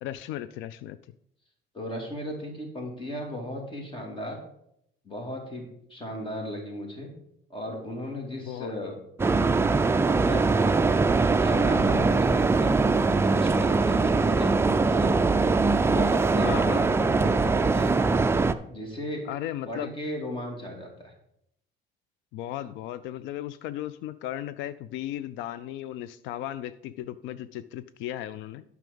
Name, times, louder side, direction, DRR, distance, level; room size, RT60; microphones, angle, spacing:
voice 1, 0.0-1.0 8.5-8.7 16.4-17.0 19.3-19.9 22.3-28.6, left 12 dB, 90° left, 15 dB, 0.4 m, -36 dB
voice 2, 1.7-4.4 5.0-7.1 7.5-9.0 10.0-10.5 11.4-12.7 13.3-15.1 15.8-18.2 18.7-19.3 19.7-21.1, left 1 dB, 25° left, 1 dB, 2.6 m, -36 dB
sound 1, 9.2-18.5, right 3 dB, 15° right, 0.4 m, -22 dB
9.2 x 6.0 x 5.3 m, 0.74 s
cardioid pair, 130°, 19 cm